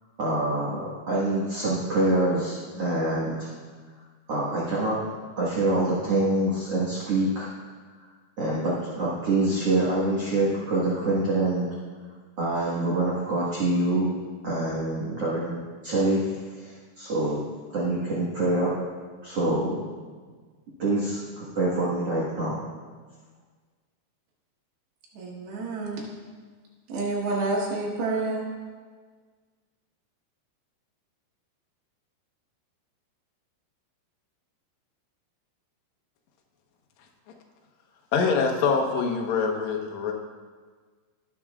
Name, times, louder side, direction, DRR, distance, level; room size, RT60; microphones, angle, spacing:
voice 1, 0.2-3.5 4.3-5.0 5.4-7.5 8.4-11.7 12.4-14.1 14.4-15.6 15.8-17.4 17.7-18.7 19.2-19.9 20.8-22.6, right 2 dB, 50° right, -7 dB, 1.9 m, -25 dB
voice 2, 25.1-26.1 26.9-28.5, right 3 dB, 85° right, -5 dB, 3.6 m, -29 dB
voice 3, 38.1-40.1, left 5 dB, 80° left, 1 dB, 1.6 m, -24 dB
18.0 x 7.0 x 2.4 m, 1.5 s
omnidirectional pair, 4.8 m